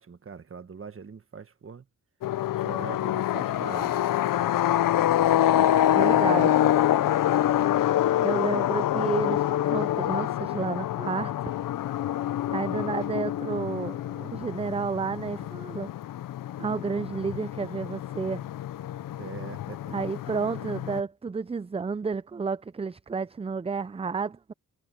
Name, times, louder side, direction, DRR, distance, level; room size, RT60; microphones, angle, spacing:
voice 1, 0.0-1.8 2.6-4.0 5.9-6.3 19.2-19.9, right 6 dB, 40° right, 1.4 m, -42 dB
sound 1, 2.2-21.0, left 12 dB, 90° left, 0.6 m, -26 dB
voice 2, 5.9-6.7 8.2-11.5 12.5-15.9 16.6-18.4 19.9-24.5, right 5 dB, 20° right, 0.4 m, -31 dB
cardioid pair, 80°, 32 cm